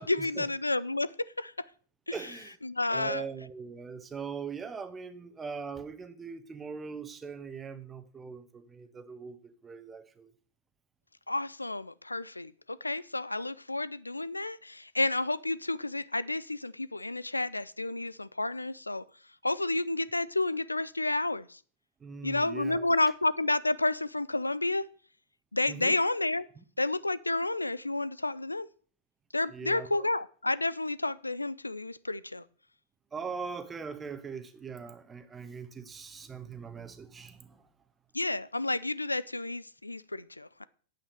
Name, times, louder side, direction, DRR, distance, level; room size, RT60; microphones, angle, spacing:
voice 1, 0.0-1.5 2.1-2.2 2.6-3.2 11.3-19.0 19.4-21.6 22.2-24.9 25.5-26.5 26.8-28.7 29.3-32.4 38.1-40.6, left 2 dB, 85° left, 0.4 m, -30 dB
voice 2, 2.1-2.6 2.9-10.3 22.0-22.9 25.7-26.0 26.6-26.7 29.5-30.1 33.1-37.7, right 5 dB, 15° right, 1.2 m, -41 dB
9.0 x 8.7 x 6.5 m
figure-of-eight pair, 95°, 0 cm